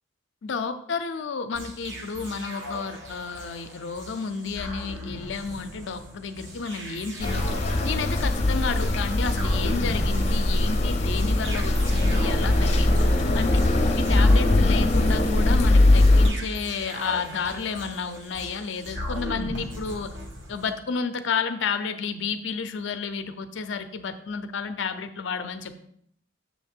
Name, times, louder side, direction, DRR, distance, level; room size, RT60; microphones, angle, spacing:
voice 1, 0.4-7.6 7.8-13.6 14.0-20.2 20.5-25.7, left 5 dB, 65° left, 9 dB, 0.5 m, -31 dB
sound 1, 1.5-20.7, equal, 70° right, 1.6 m, -37 dB
sound 2, 7.2-16.3, left 2 dB, 35° left, 0.7 m, -21 dB
7.1 x 3.5 x 5.9 m, 0.68 s
head